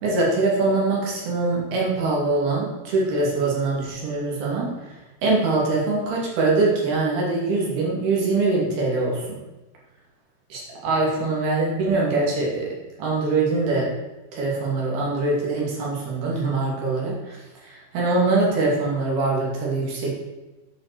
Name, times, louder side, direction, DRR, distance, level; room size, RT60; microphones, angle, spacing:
voice 1, 0.0-5.0 5.2-9.2 10.5-12.7 13.0-14.0 14.3-20.1, right 3 dB, 85° right, -4 dB, 4.5 m, -23 dB
10.5 x 5.4 x 6.8 m, 1.1 s
omnidirectional pair, 4.3 m